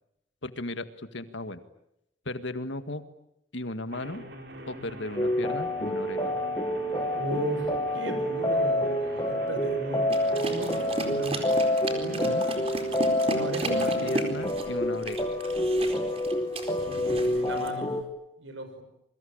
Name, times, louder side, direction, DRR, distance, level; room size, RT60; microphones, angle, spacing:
voice 1, 0.4-1.6 2.3-3.0 3.5-4.2 4.7-6.3 12.3-12.4 13.6-15.3, left 2 dB, 70° left, 10 dB, 1.9 m, -36 dB
sound 1, 3.9-16.9, right 1 dB, 55° right, 6.0 m, -45 dB
sound 2, 5.2-18.0, left 1 dB, 20° left, 1.9 m, -28 dB
voice 2, 7.1-11.5 11.9-12.3 13.3-14.3 16.8-18.0 18.4-18.8, equal, 80° right, 9 dB, 6.2 m, -36 dB
sound 3, 10.1-17.7, right 2 dB, 30° right, 4.2 m, -35 dB
28.0 x 23.5 x 8.9 m, 0.82 s
head